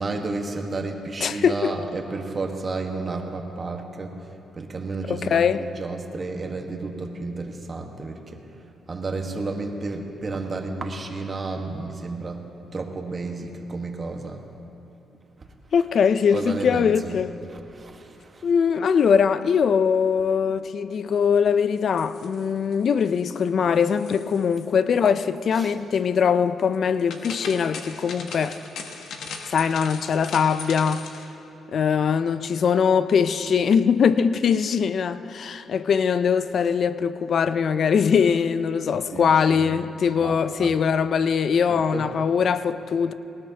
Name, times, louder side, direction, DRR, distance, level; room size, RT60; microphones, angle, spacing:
voice 1, 0.0-4.1 4.6-8.4 8.9-12.5 12.7-14.4 16.3-17.2 17.5-18.4 25.5-25.7 39.1-39.6 40.2-40.8 41.7-42.1, right 3 dB, 35° right, 1.4 m, -32 dB
voice 2, 1.2-1.7 5.1-5.6 15.7-17.4 18.4-28.6 29.5-31.0 31.7-43.1, left 6 dB, 60° left, 0.5 m, -21 dB
sound 1, 21.8-22.7 23.1-23.5 23.7-24.7 24.9-25.1 26.7-31.3, left 4 dB, 80° left, 1.2 m, -39 dB
19.5 x 18.5 x 2.9 m
cardioid pair, 95°, 0 cm